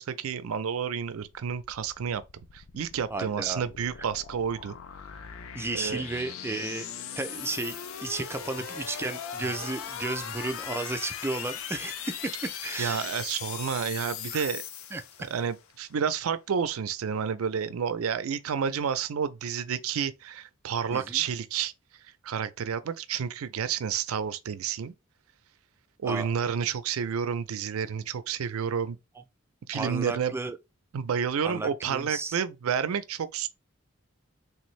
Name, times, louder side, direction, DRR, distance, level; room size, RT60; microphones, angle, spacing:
voice 1, 0.0-2.2 2.5-4.8 5.7-6.0 12.8-14.6 15.3-21.7 22.2-24.9 26.0-29.0 29.7-30.3 30.9-33.5, right 7 dB, 85° right, 0.4 m, -30 dB
sound 1, 1.3-15.6, left 8 dB, 75° left, 0.5 m, -39 dB
voice 2, 3.1-3.6 5.5-6.9 7.2-13.1 14.3-14.5 14.9-15.0 20.9-21.2 26.0-26.3 29.7-30.5 31.4-32.4, right 3 dB, 10° right, 0.4 m, -33 dB
3.4 x 2.6 x 3.1 m
head